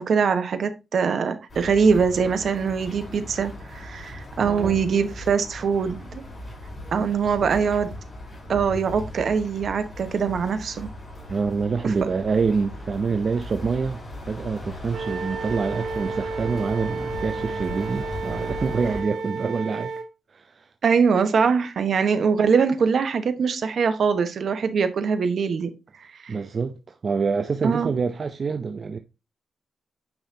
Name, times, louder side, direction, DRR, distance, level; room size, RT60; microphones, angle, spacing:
voice 1, 0.0-6.2 6.9-7.9 8.5-10.9 11.8-11.9 20.8-25.7 26.2-26.4 27.6-27.9, right 6 dB, 60° right, 1.1 m, -22 dB
sound 1, 1.5-19.0, left 1 dB, 35° left, 4.8 m, -38 dB
voice 2, 4.4-4.8 7.0-7.5 11.3-19.9 20.3-20.7 26.3-29.0, right 5 dB, 45° right, 0.6 m, -26 dB
Wind instrument woodwind instrument, 14.9-20.1, right 4 dB, 85° right, 1.6 m, -32 dB
8.8 x 5.6 x 2.8 m
wide cardioid pair, 130°, 0 cm